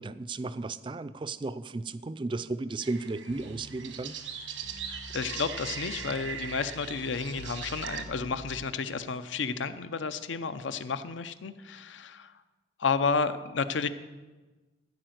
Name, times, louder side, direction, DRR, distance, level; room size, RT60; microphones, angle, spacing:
voice 1, 0.0-4.2, right 3 dB, 25° right, 13 dB, 0.3 m, -34 dB
sound 1, 2.8-8.0, right 7 dB, 90° right, 1.2 m, -40 dB
sound 2, 3.3-8.6, equal, 55° left, 1.0 m, -48 dB
voice 2, 4.9-12.3 12.8-13.9, left 5 dB, 75° left, 12 dB, 0.6 m, -31 dB
14.5 x 4.9 x 7.8 m, 1.2 s
head